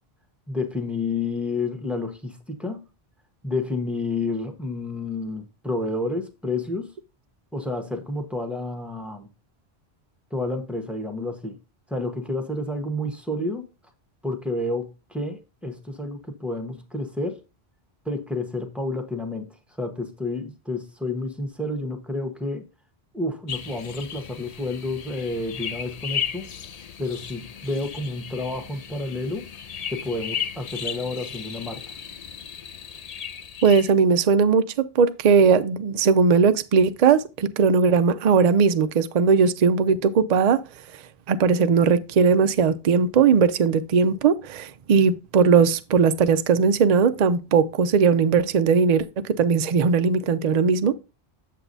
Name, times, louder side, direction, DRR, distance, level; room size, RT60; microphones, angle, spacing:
voice 1, 0.5-2.8 3.4-6.9 7.5-9.3 10.3-11.6 11.9-13.7 14.2-17.4 18.0-22.7 23.1-26.5 27.0-29.5 29.9-31.8, left 2 dB, ahead, 1.1 m, -30 dB
sound 1, 23.5-33.9, left 8 dB, 50° left, 0.5 m, -35 dB
voice 2, 33.6-40.6 41.3-50.9, right 5 dB, 50° right, 0.5 m, -19 dB
7.9 x 7.4 x 2.7 m
omnidirectional pair, 1.1 m